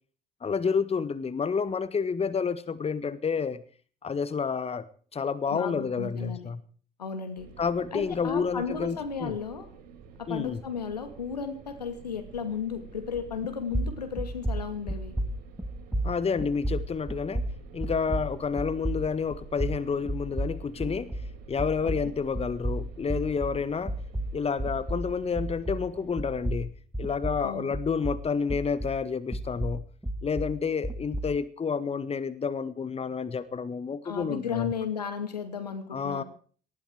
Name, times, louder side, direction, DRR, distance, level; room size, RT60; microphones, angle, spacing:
voice 1, 0.4-3.6 4.0-4.8 5.1-6.6 7.6-9.4 10.3-10.6 16.0-17.4 17.7-21.1 21.5-23.9 24.3-26.7 27.0-29.8 30.2-34.7 35.9-36.2, left 5 dB, 30° left, 15 dB, 1.6 m, -29 dB
voice 2, 5.5-6.5 7.0-7.5 7.9-9.7 10.2-15.1 22.0-22.1 27.4-27.7 34.0-36.2, left 6 dB, 85° left, 8 dB, 2.4 m, -34 dB
sound 1, 7.4-26.7, right 6 dB, 75° right, 3.8 m, -49 dB
sound 2, 13.1-13.5 13.7-21.3 21.6-25.9 26.2-29.0 29.3-31.4, right 1 dB, 5° right, 2.7 m, -32 dB
19.0 x 16.0 x 4.6 m, 0.44 s
figure-of-eight pair, 50°, 20 cm